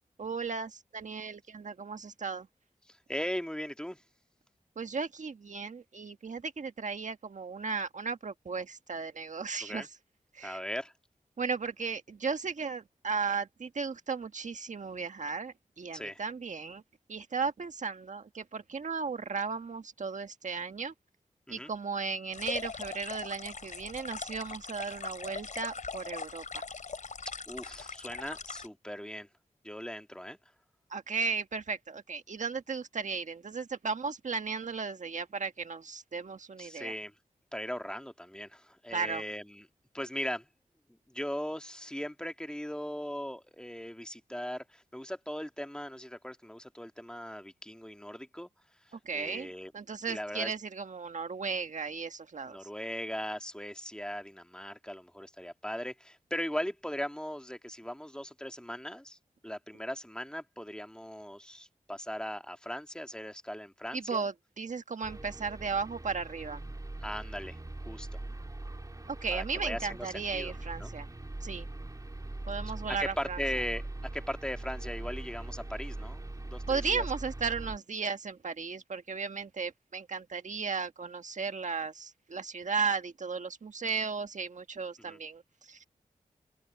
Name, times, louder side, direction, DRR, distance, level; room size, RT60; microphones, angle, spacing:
voice 1, 0.2-2.5 4.8-9.9 10.3-10.6 11.4-16.8 17.1-20.9 21.5-26.7 30.9-36.9 38.9-39.2 49.0-52.6 63.9-66.6 69.1-71.1 71.4-71.7 72.5-73.4 76.7-85.8, right 5 dB, 60° right, 1.5 m, -35 dB
voice 2, 2.9-4.0 9.6-9.9 10.4-10.9 15.9-16.2 21.5-21.7 27.5-29.3 29.6-30.4 36.6-37.1 37.5-39.7 39.9-40.5 41.1-48.5 49.1-49.7 50.1-50.5 52.5-59.2 59.4-64.3 67.0-67.6 67.9-68.2 69.3-70.5 70.8-70.9 73.0-73.8 74.1-77.0 85.0-85.2, equal, 5° left, 2.0 m, -39 dB
sound 1, 22.3-28.7, left 4 dB, 65° left, 4.1 m, -41 dB
sound 2, 65.0-77.8, right 2 dB, 25° right, 3.6 m, -41 dB
open air
cardioid pair, 65°, 14 cm